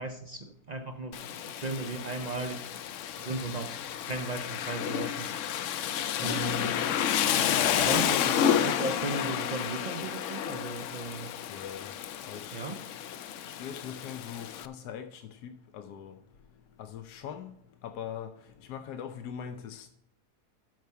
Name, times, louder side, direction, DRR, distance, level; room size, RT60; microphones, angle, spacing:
voice 1, 0.0-2.7 3.2-3.8 4.1-5.3 6.2-6.8 7.8-11.3 12.5-12.8, right 3 dB, 55° right, 0.4 m, -36 dB
Rain, 1.1-14.7, left 9 dB, 65° left, 0.8 m, -31 dB
voice 2, 11.5-11.9 12.3-12.8 13.4-16.2 16.8-17.5 17.8-18.3 18.6-19.9, left 8 dB, 85° left, 1.3 m, -41 dB
12.5 x 4.7 x 5.6 m
omnidirectional pair, 1.7 m